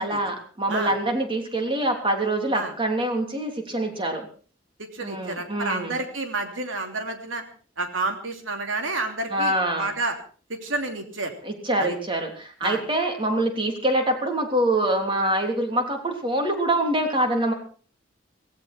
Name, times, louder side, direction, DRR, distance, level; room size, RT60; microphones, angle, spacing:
voice 1, 0.0-4.3 5.0-6.0 9.3-9.9 11.4-17.5, right 1 dB, 25° right, 4 dB, 3.3 m, -25 dB
voice 2, 4.8-7.4 7.8-10.1 10.5-11.3 11.8-12.0 12.6-12.8, right 3 dB, 90° right, 5 dB, 3.1 m, -30 dB
17.0 x 16.5 x 4.4 m, 0.41 s
head